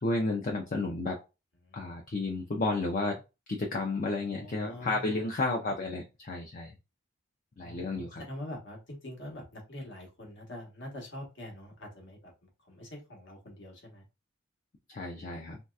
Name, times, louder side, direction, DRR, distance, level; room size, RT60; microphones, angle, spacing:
voice 1, 0.0-1.2 1.7-3.2 3.5-6.7 7.6-8.2 14.9-15.6, left 2 dB, 40° left, 2 dB, 0.5 m, -32 dB
voice 2, 4.3-5.2 7.6-12.3 12.7-14.0, left 1 dB, 60° left, 1 dB, 1.1 m, -44 dB
3.1 x 2.8 x 2.3 m, 0.26 s
head